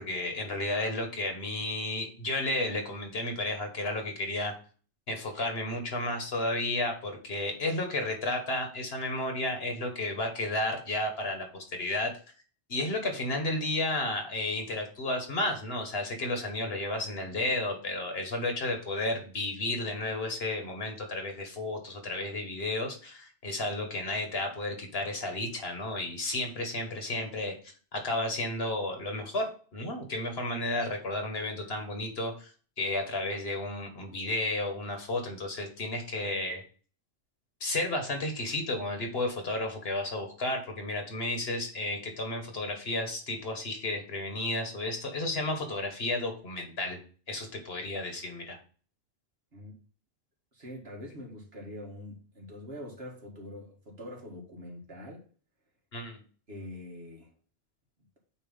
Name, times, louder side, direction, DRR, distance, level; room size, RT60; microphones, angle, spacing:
voice 1, 0.0-4.5 5.1-12.1 12.7-27.5 27.9-32.5 32.8-36.6 37.6-47.0 47.3-48.6 55.9-56.2, left 2 dB, 65° left, 4 dB, 1.7 m, -32 dB
voice 2, 50.5-55.2 56.5-57.3, left 1 dB, 65° right, -1 dB, 2.0 m, -44 dB
8.6 x 2.9 x 5.4 m, 0.40 s
omnidirectional pair, 1.1 m